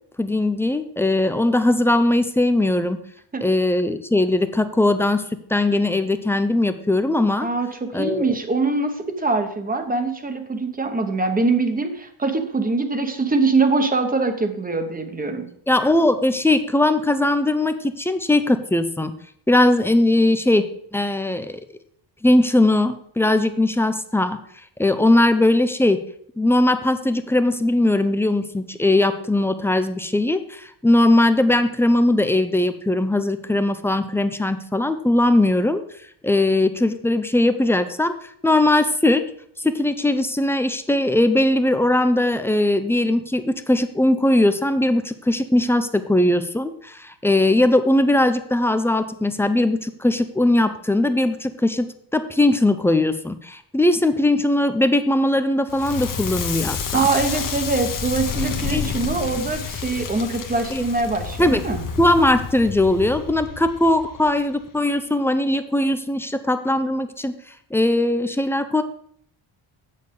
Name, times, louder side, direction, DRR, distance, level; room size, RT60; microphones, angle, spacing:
voice 1, 0.2-3.0 3.4-5.2 5.5-7.5 7.9-8.3 15.7-19.1 19.5-20.7 20.9-21.6 22.2-24.4 24.8-26.0 26.4-35.8 36.2-38.1 38.4-39.2 39.6-57.1 58.7-58.9 60.7-60.8 61.4-61.6 62.0-67.3 67.7-68.8, left 1 dB, 5° left, 9 dB, 0.3 m, -19 dB
voice 2, 7.4-15.5 56.9-61.8, right 3 dB, 15° right, 7 dB, 0.9 m, -23 dB
Crackle, 55.7-64.7, left 6 dB, 40° left, 0.9 m, -30 dB
8.0 x 6.6 x 5.3 m, 0.65 s
cardioid pair, 155°, 49 cm